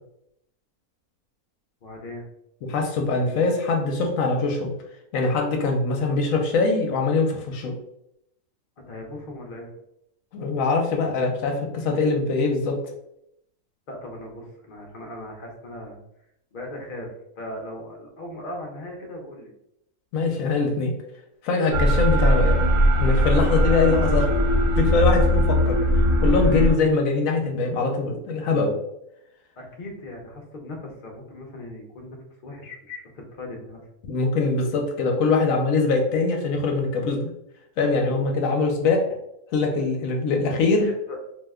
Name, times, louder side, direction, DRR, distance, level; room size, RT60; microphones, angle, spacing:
voice 1, 1.8-2.3 8.8-9.7 13.9-16.0 16.5-19.5 29.6-33.8 40.7-41.2, left 1 dB, 55° left, 0 dB, 0.5 m, -38 dB
voice 2, 2.7-4.7 5.1-7.7 10.3-12.8 20.1-20.9 21.4-22.6 23.0-24.3 24.8-25.8 26.2-28.8 34.1-37.3 37.8-39.0 39.5-40.9, left 3 dB, 70° left, 2 dB, 0.9 m, -22 dB
sound 1, 21.7-26.7, equal, 85° right, 1.2 m, -20 dB
2.7 x 2.1 x 3.4 m, 0.80 s
omnidirectional pair, 1.6 m